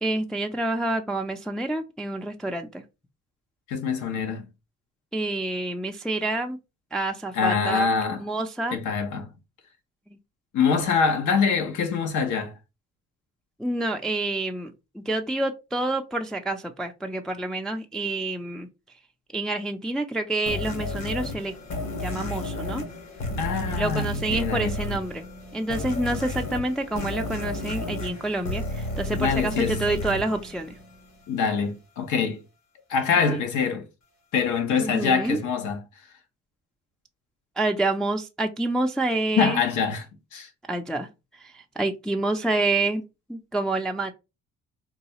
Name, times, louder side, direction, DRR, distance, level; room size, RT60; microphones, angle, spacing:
voice 1, 0.0-2.8 5.1-6.6 6.9-7.9 8.2-8.8 10.1-10.2 13.6-18.7 19.3-21.5 22.0-22.8 23.8-25.2 25.5-30.8 33.3-33.4 34.8-35.4 37.6-39.6 40.7-41.1 41.4-43.0 43.3-44.1, right 2 dB, ahead, 0.3 m, -28 dB
voice 2, 3.7-4.5 7.3-8.2 8.7-9.3 10.5-12.5 23.4-24.7 29.1-29.8 31.3-32.4 32.9-33.9 34.3-35.8 39.4-40.0 40.3-40.5, left 6 dB, 80° left, 0.8 m, -24 dB
sound 1, 20.5-31.2, left 1 dB, 65° left, 1.3 m, -32 dB
3.9 x 2.3 x 2.8 m
cardioid pair, 90°, 30 cm